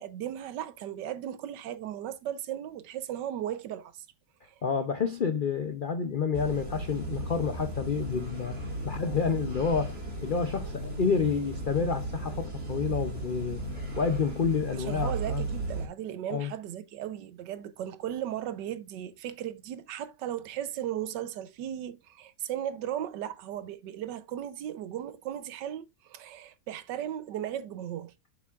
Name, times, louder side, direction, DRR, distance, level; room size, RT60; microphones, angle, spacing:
voice 1, 0.0-4.0 4.4-4.5 14.8-28.1, right 11 dB, 85° right, 1.4 m, -36 dB
voice 2, 4.6-8.6 8.8-13.6 14.0-15.4 16.3-16.5, left 5 dB, 75° left, 0.4 m, -29 dB
sound 1, 6.3-15.9, right 2 dB, 35° right, 2.5 m, -35 dB
7.5 x 7.0 x 2.4 m
omnidirectional pair, 1.8 m